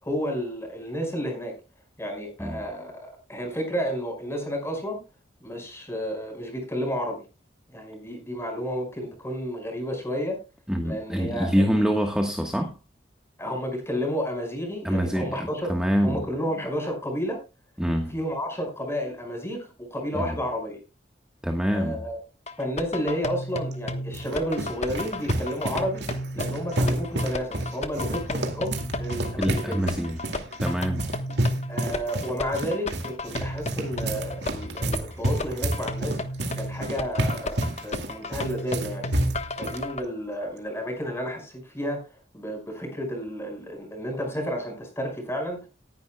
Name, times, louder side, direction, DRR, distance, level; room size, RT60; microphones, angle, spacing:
voice 1, 0.0-1.5 2.0-5.0 5.4-7.2 7.7-10.4 10.8-11.6 13.4-15.7 16.0-17.4 18.1-20.8 21.7-22.2 22.6-26.1 26.3-29.8 31.7-36.2 36.5-39.1 39.5-42.1 42.3-45.7, equal, 15° left, 5.3 m, -31 dB
voice 2, 10.7-12.8 14.8-16.2 17.8-18.1 20.1-20.4 21.4-22.0 29.4-30.2 30.6-31.1, equal, 5° right, 1.3 m, -25 dB
sound 1, 22.5-40.0, left 1 dB, 35° left, 1.2 m, -33 dB
sound 2, 23.7-39.8, right 1 dB, 65° right, 2.3 m, -30 dB
18.5 x 10.5 x 2.3 m
head